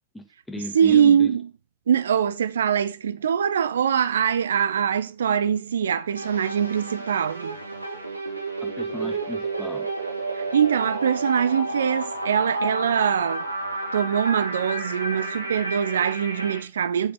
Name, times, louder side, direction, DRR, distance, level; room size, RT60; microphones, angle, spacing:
voice 1, 0.1-1.3 8.6-9.9, left 1 dB, 5° left, 1.8 m, -36 dB
voice 2, 0.7-1.5 1.9-7.6 10.4-13.4 13.9-17.1, right 8 dB, 65° right, 0.6 m, -23 dB
sound 1, 6.1-16.6, right 2 dB, 85° right, 1.5 m, -31 dB
7.0 x 6.8 x 5.1 m
figure-of-eight pair, 90°, 0 cm